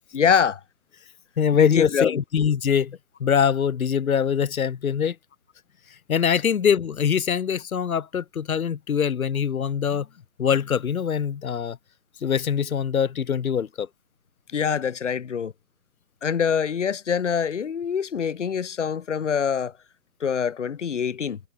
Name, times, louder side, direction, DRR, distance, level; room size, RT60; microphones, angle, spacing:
voice 1, 0.1-0.6 1.5-2.2 14.5-15.5 16.2-19.7 20.2-21.4, left 7 dB, 60° left, 2.1 m, -24 dB
voice 2, 1.4-5.2 6.1-10.1 10.4-11.8 12.2-13.9, left 7 dB, 90° left, 0.6 m, -23 dB
figure-of-eight pair, 135°, 41 cm